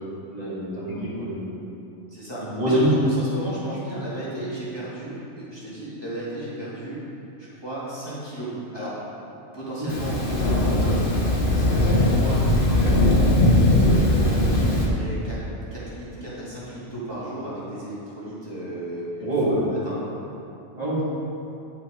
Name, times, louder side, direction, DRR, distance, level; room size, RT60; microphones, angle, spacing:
voice 1, 0.3-1.6 2.4-2.9 9.8-9.9 12.8-12.9 19.2-19.6 20.7-21.0, right 1 dB, 30° right, -9 dB, 2.1 m, -26 dB
voice 2, 2.1-7.0 7.4-8.9 9.5-11.1 11.5-13.3 13.6-15.4 15.7-20.0, right 1 dB, 20° left, -10 dB, 1.9 m, -34 dB
Thunder, 9.9-14.9, left 1 dB, 45° left, 1.2 m, -19 dB
10.0 x 5.7 x 4.9 m, 2.8 s
omnidirectional pair, 1.3 m